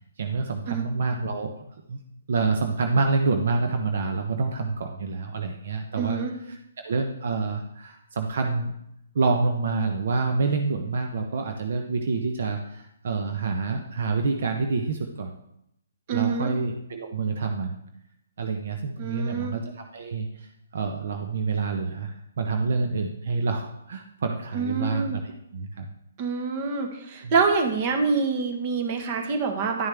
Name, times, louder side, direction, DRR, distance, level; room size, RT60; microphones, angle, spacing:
voice 1, 0.2-1.5 1.9-2.0 2.3-8.7 9.1-15.3 16.1-17.8 18.4-25.9 27.2-27.3, right 4 dB, 60° right, 4 dB, 0.9 m, -27 dB
voice 2, 6.0-6.3 16.1-16.5 19.0-19.5 24.5-25.2 26.2-29.9, right 5 dB, 35° right, 5 dB, 1.4 m, -26 dB
10.5 x 6.5 x 3.5 m, 0.79 s
hypercardioid pair, 145°, 0 cm